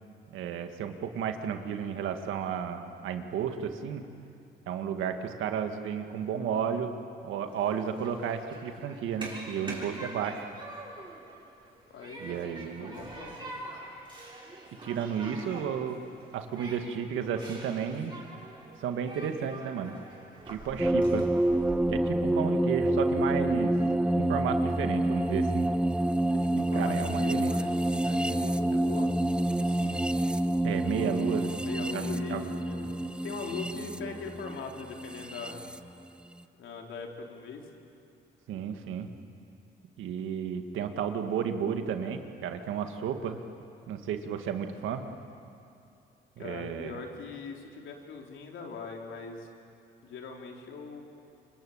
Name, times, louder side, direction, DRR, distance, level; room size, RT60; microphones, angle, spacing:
voice 1, 0.3-4.0 4.7-6.9 7.2-10.5 12.2-13.0 14.8-16.0 16.3-18.1 18.8-20.0 20.5-21.3 21.9-23.7 24.2-25.7 26.5-27.5 30.6-31.6 31.9-32.0 32.3-32.5 38.5-39.1 40.0-43.4 43.9-45.0 46.4-47.0, right 8 dB, 85° right, 6 dB, 2.1 m, -33 dB
Human group actions, 7.5-21.8, right 2 dB, 25° right, 7.0 m, -45 dB
voice 2, 11.9-13.6 26.3-29.2 29.5-30.0 31.6-35.6 36.6-37.6 46.4-49.5 50.0-51.0, left 5 dB, 75° left, 1 dB, 3.9 m, -41 dB
sound 1, 20.8-35.8, right 1 dB, 5° right, 0.8 m, -28 dB
27.5 x 24.5 x 8.8 m, 2.6 s
cardioid pair, 90°, 20 cm